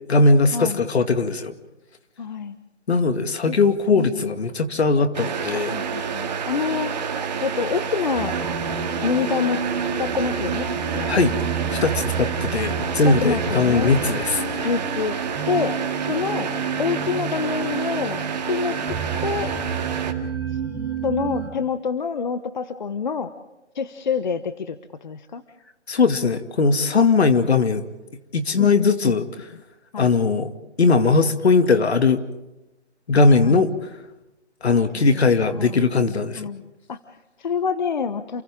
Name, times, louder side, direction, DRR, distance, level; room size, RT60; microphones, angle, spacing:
voice 1, 0.1-1.5 2.9-6.1 11.1-11.3 11.6-14.7 25.9-27.8 28.3-29.3 30.0-30.5 30.8-32.2 33.1-33.9 34.6-36.5, left 4 dB, 65° left, 8 dB, 2.4 m, -19 dB
voice 2, 2.2-2.6 3.5-3.6 3.9-4.2 5.6-8.4 9.0-9.6 10.0-11.1 13.0-14.0 14.6-15.2 15.5-15.8 16.1-16.5 16.8-18.2 18.5-19.0 19.2-19.5 20.5-20.6 21.0-23.3 23.7-25.4 28.6-29.2 29.9-30.2 33.4-33.7 34.9-35.8 36.4-36.6 36.9-38.4, left 6 dB, 40° left, 11 dB, 1.0 m, -27 dB
sound 1, 5.1-20.1, right 6 dB, 35° right, 2.1 m, -29 dB
sound 2, 8.1-21.5, right 5 dB, 10° right, 3.4 m, -30 dB
30.0 x 29.0 x 3.7 m, 0.98 s
hypercardioid pair, 160°, 35 cm